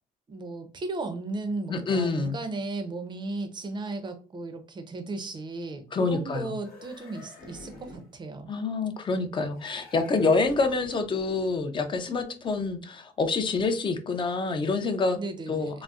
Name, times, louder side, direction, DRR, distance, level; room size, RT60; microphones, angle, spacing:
voice 1, 0.3-8.5 10.1-10.3 15.2-15.8, right 2 dB, 25° right, 0.5 m, -35 dB
voice 2, 1.7-2.4 5.9-6.5 8.5-15.2 15.5-15.8, left 3 dB, 30° left, 0.5 m, -27 dB
sound 1, 6.5-8.2 9.5-11.1, left 3 dB, 60° left, 0.9 m, -48 dB
3.9 x 2.0 x 2.3 m
cardioid pair, 110°, 17 cm